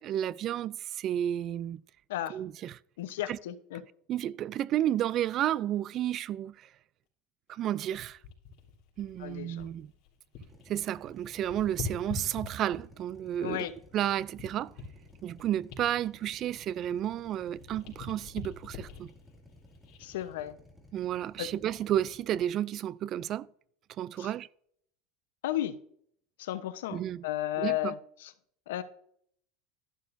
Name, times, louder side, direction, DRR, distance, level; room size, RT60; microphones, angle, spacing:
voice 1, 0.0-1.8 2.3-2.7 3.3-3.4 4.1-6.7 7.5-8.2 9.0-9.9 10.7-13.6 13.9-14.7 15.2-19.1 20.9-23.5 24.0-24.5 26.9-27.2 27.6-27.9, right 11 dB, 40° right, 0.3 m, -32 dB
voice 2, 3.0-3.8 9.2-9.7 13.4-13.7 20.0-20.6 21.4-21.5 24.2-24.3 25.4-25.8 26.4-28.3 28.7-28.8, left 13 dB, 90° left, 0.9 m, -34 dB
sound 1, 7.9-10.7 10.9-13.1 13.6-17.2 17.5-20.3 20.8-21.0, left 4 dB, 55° left, 3.4 m, -44 dB
Drill, 10.5-22.5, left 1 dB, 5° right, 2.3 m, -56 dB
12.5 x 11.0 x 2.6 m
supercardioid pair, 135°, 0 cm